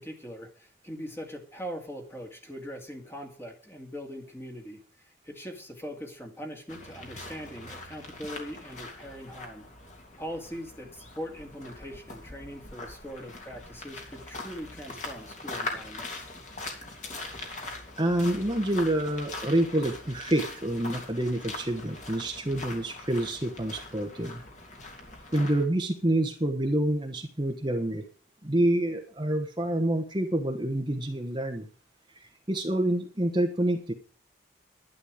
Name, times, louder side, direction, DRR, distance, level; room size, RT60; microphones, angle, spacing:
voice 1, 0.0-9.7 10.2-16.3, equal, 15° left, 3 dB, 2.1 m, -41 dB
sound 1, 6.7-25.6, left 2 dB, 40° left, 2.9 m, -42 dB
voice 2, 18.0-24.4 25.3-28.0 28.4-31.7 32.1-33.9, right 1 dB, 25° right, 3 dB, 1.2 m, -27 dB
11.5 x 11.0 x 5.0 m, 0.42 s
head